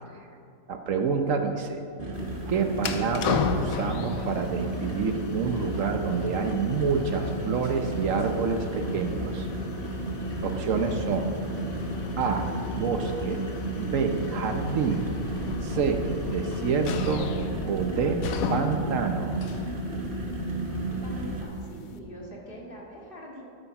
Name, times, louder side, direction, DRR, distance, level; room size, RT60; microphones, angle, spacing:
voice 1, 0.7-1.8 2.5-9.5 10.4-11.3 12.2-12.4 12.8-13.4 13.8-15.0 15.6-16.0 16.3-17.3 17.7-18.2 18.5-19.3, right 5 dB, 70° right, 6 dB, 1.2 m, -28 dB
sound 1, 2.0-21.4, right 1 dB, 40° right, 1.5 m, -33 dB
sound 2, 2.1-22.0, left 5 dB, 85° left, 1.2 m, -37 dB
voice 2, 20.6-23.4, right 1 dB, 40° left, -2 dB, 2.1 m, -43 dB
13.0 x 8.2 x 5.9 m, 2.4 s
omnidirectional pair, 1.4 m